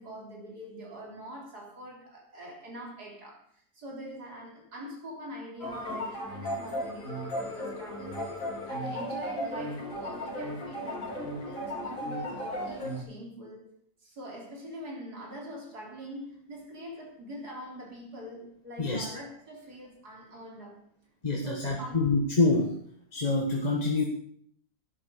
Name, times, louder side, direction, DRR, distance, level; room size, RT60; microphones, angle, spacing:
voice 1, 0.0-8.2 8.7-11.1 11.4-13.7 14.0-20.9 21.4-22.1, equal, 70° right, 4.2 m, -43 dB
sound 1, 5.6-13.0, equal, 55° left, 3.6 m, -35 dB
voice 2, 21.2-22.8 23.1-24.0, left 3 dB, 25° left, 1.6 m, -26 dB
12.0 x 10.5 x 6.9 m
omnidirectional pair, 1.7 m